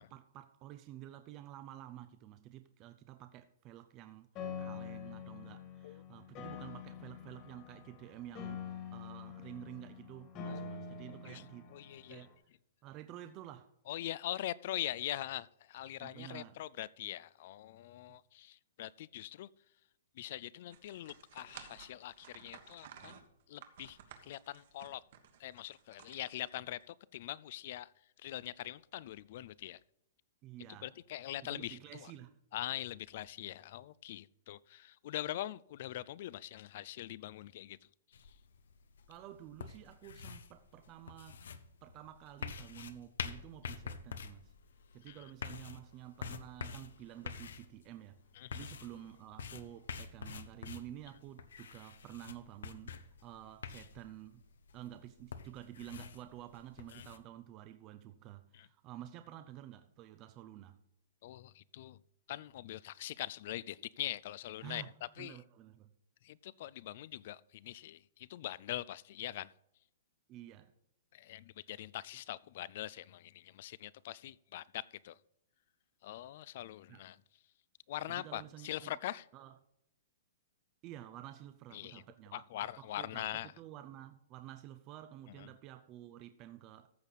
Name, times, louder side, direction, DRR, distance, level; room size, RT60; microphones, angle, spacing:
voice 1, 0.0-4.3 4.6-11.8 12.1-12.4 12.8-13.7 16.0-16.6 18.1-18.2 30.4-30.9 31.4-32.4 39.1-44.5 44.9-48.2 48.5-54.4 54.7-60.8 64.6-65.9 70.3-70.7 76.9-77.0 78.1-79.0 79.3-79.5 80.8-82.4 82.8-86.9, right 12 dB, 25° right, 0.5 m, -51 dB
Piano, 4.4-12.3, left 6 dB, 30° left, 1.8 m, -46 dB
voice 2, 10.5-10.8 11.2-11.4 11.7-12.3 13.9-19.5 20.1-23.2 23.5-25.0 25.4-27.9 28.2-29.8 30.8-32.1 32.5-37.8 38.1-38.4 45.1-45.3 48.3-48.7 56.9-57.0 58.5-58.7 61.2-62.0 62.3-64.9 65.2-65.4 66.2-69.5 71.1-75.2 76.0-77.2 77.9-79.3 81.7-82.0 82.3-83.5 85.4-85.5, left 14 dB, 45° left, 0.4 m, -43 dB
sound 1, 20.7-26.8, right 9 dB, 55° right, 1.4 m, -55 dB
sound 2, 38.1-57.2, left 6 dB, 85° left, 0.9 m, -47 dB
14.5 x 6.4 x 4.1 m
hypercardioid pair, 160°, 0 cm